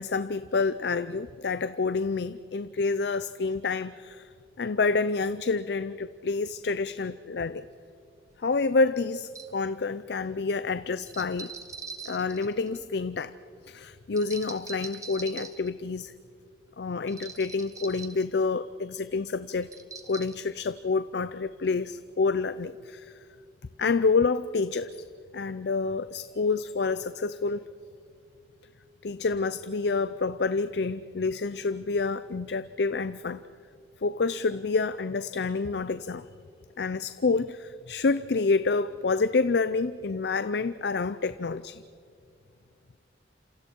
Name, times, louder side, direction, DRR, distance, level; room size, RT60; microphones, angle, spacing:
voice 1, 0.0-4.3 4.6-7.7 8.4-11.5 12.1-13.3 13.7-16.1 16.8-19.7 20.1-23.1 23.8-25.1 25.3-27.7 29.0-33.4 34.0-36.3 36.8-41.8, left 4 dB, 65° left, 14 dB, 0.5 m, -28 dB
sound 1, 8.3-8.4 9.2-9.6 11.1-12.9 14.2-15.7 17.1-18.3 19.6-20.4, right 5 dB, 20° right, 1.4 m, -43 dB
29.0 x 27.0 x 4.5 m, 2.4 s
head